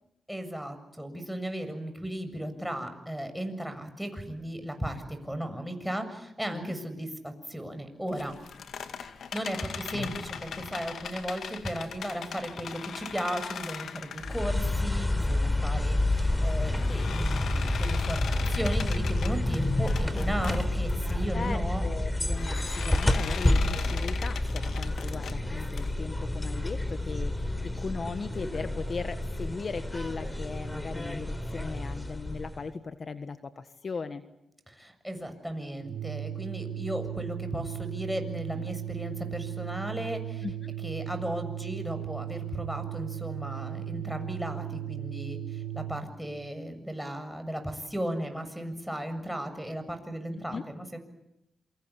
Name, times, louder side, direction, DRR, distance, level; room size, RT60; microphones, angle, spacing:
voice 1, 0.3-8.4 9.0-21.8 34.7-40.5 40.8-51.0, right 1 dB, ahead, 7 dB, 7.3 m, -36 dB
sound 1, 8.1-15.3 15.8-21.1 22.3-25.9, left 7 dB, 75° left, 2.2 m, -40 dB
sound 2, 14.2-32.7, left 1 dB, 15° left, 4.0 m, -29 dB
voice 2, 21.3-34.2 40.4-40.7 50.5-50.6, left 4 dB, 50° left, 9 dB, 1.5 m, -38 dB
Organ, 35.8-46.1, right 11 dB, 85° right, 1.4 m, -37 dB
27.5 x 24.5 x 8.5 m, 0.83 s
cardioid pair, 55°, 0 cm